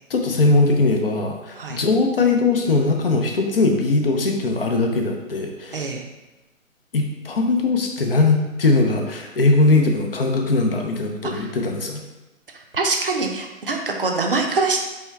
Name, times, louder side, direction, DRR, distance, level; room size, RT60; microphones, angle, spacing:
voice 1, 0.1-5.8 6.9-12.0, left 3 dB, 45° left, 2 dB, 0.7 m, -20 dB
voice 2, 5.7-6.0 11.3-11.5 12.7-14.8, right 3 dB, 40° right, 2 dB, 0.6 m, -24 dB
4.4 x 3.3 x 3.5 m, 1.1 s
hypercardioid pair, 165°, 41 cm